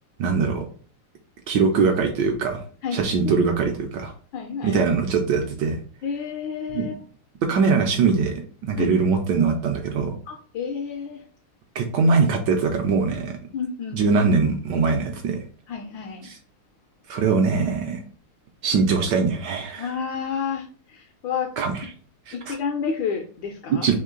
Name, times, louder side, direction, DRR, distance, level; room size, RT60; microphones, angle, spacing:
voice 1, 0.2-0.6 1.5-2.6 2.9-4.1 4.6-5.8 6.7-6.9 7.5-10.1 11.7-13.3 13.9-15.4 16.2-16.4 17.1-18.0 18.6-19.9 21.6-21.9 22.3-22.6 23.8-23.9, right 4 dB, 80° right, 4 dB, 1.0 m, -22 dB
voice 2, 2.8-3.1 4.3-4.8 6.0-7.0 8.8-8.9 10.3-11.2 13.5-14.0 15.7-16.3 19.8-21.5 22.3-23.9, left 6 dB, 75° left, 3 dB, 1.2 m, -30 dB
3.6 x 3.1 x 3.7 m, 0.43 s
omnidirectional pair, 2.4 m